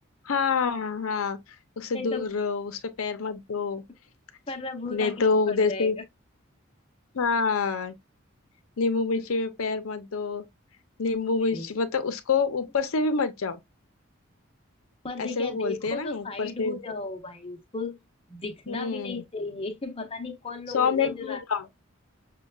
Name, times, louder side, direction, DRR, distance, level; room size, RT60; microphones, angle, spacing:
voice 1, 0.3-1.4 1.8-3.8 4.9-6.0 7.1-7.9 8.8-10.5 11.0-13.6 15.2-16.8 18.7-19.2 20.7-21.7, left 4 dB, 85° left, 0.6 m, -27 dB
voice 2, 1.9-2.3 4.5-5.9 9.1-9.2 11.5-11.7 15.0-18.0 18.3-21.4, left 3 dB, 25° left, 0.8 m, -35 dB
6.3 x 2.2 x 2.3 m
head